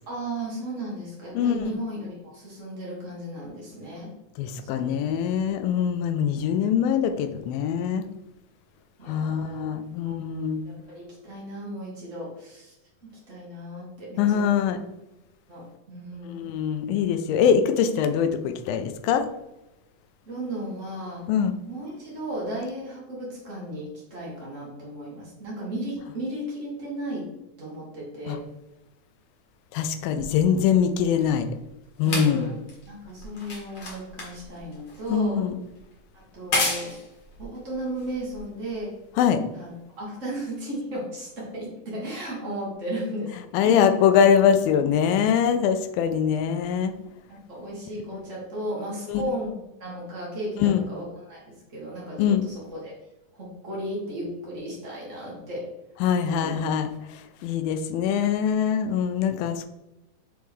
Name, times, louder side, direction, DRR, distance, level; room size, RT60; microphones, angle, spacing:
voice 1, 0.1-4.1 4.6-5.2 9.0-9.6 10.0-12.7 13.3-14.7 15.5-16.4 20.2-21.2 21.7-27.2 27.6-28.4 32.0-35.4 36.1-37.0 37.4-38.9 39.5-43.3 43.6-43.9 47.3-52.9 53.3-55.7 56.2-56.6, right 1 dB, 65° right, -5 dB, 0.7 m, -35 dB
voice 2, 4.4-8.0 9.1-10.6 14.2-14.8 16.3-19.3 21.3-21.5 28.3-28.4 29.7-31.5 32.0-32.5 35.1-35.6 39.2-39.4 43.5-46.9 48.1-48.2 49.1-49.2 50.6-50.8 52.2-52.4 56.0-59.7, left 8 dB, 80° left, 9 dB, 2.2 m, -23 dB
sound 1, 30.2-38.8 39.6-39.7, left 2 dB, 50° left, 1.5 m, -34 dB
6.3 x 4.4 x 3.5 m, 0.95 s
omnidirectional pair, 4.3 m